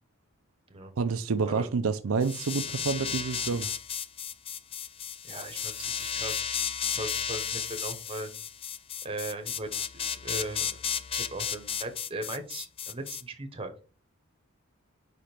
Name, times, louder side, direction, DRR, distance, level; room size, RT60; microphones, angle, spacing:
voice 1, 1.0-3.7, right 5 dB, 75° right, 0.5 m, -28 dB
sound 1, 2.2-13.2, left 8 dB, 25° left, 0.3 m, -33 dB
voice 2, 5.2-6.5 6.9-8.3 9.0-10.8 11.1-13.7, right 2 dB, 25° right, 1.0 m, -38 dB
5.1 x 5.0 x 4.4 m
head